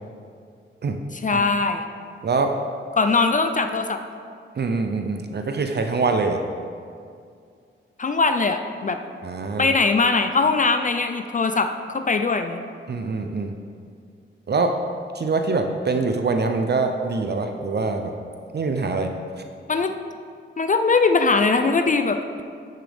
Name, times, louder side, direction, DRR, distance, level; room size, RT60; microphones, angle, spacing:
voice 1, 1.1-1.9 3.0-4.0 8.0-9.0 9.6-12.6 19.7-19.9 20.6-22.4, left 4 dB, 40° left, 7 dB, 0.4 m, -21 dB
voice 2, 4.6-6.4 9.2-9.7 12.9-13.5 14.5-14.7 15.1-18.1 18.5-19.1, right 4 dB, 55° right, 5 dB, 0.6 m, -24 dB
10.0 x 6.6 x 3.5 m, 2.3 s
wide cardioid pair, 90°, 21 cm